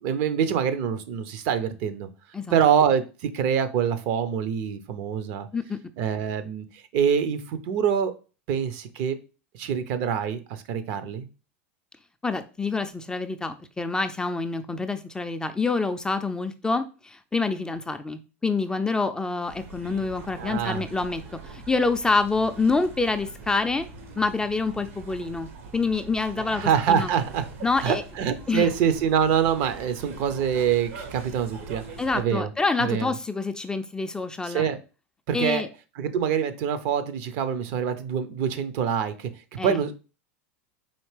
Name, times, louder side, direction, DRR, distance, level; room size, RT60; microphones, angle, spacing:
voice 1, 0.0-2.1 2.5-5.5 6.0-6.7 6.9-8.1 8.5-9.2 9.6-11.3 20.3-20.8 26.4-27.4 27.8-31.8 32.1-32.5 32.8-33.1 34.4-34.8 35.3-35.7 36.0-39.3 39.6-39.9, right 8 dB, 55° right, 11 dB, 0.6 m, -25 dB
voice 2, 12.2-23.9 24.2-27.1 27.6-28.0 28.5-28.7 32.0-34.7 35.3-35.7 39.6-39.8, left 3 dB, 10° left, 8 dB, 0.3 m, -27 dB
sound 1, 19.5-32.2, right 3 dB, 75° right, 1.1 m, -43 dB
4.2 x 2.8 x 3.2 m, 0.33 s
hypercardioid pair, 105°, 7 cm